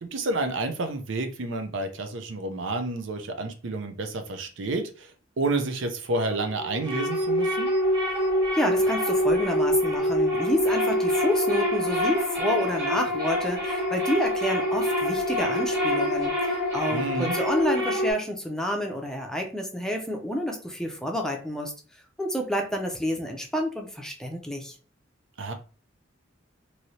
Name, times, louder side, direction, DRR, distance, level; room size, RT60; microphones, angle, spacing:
voice 1, 0.0-5.1 5.4-7.7 16.9-17.4 25.4-25.5, right 2 dB, 75° right, 7 dB, 0.5 m, -30 dB
Creaking Metal - Slow, 6.1-18.1, equal, 25° right, 1.5 m, -25 dB
voice 2, 8.5-21.7 22.2-24.7, equal, 5° left, 2 dB, 0.5 m, -29 dB
3.1 x 2.7 x 2.7 m, 0.37 s
head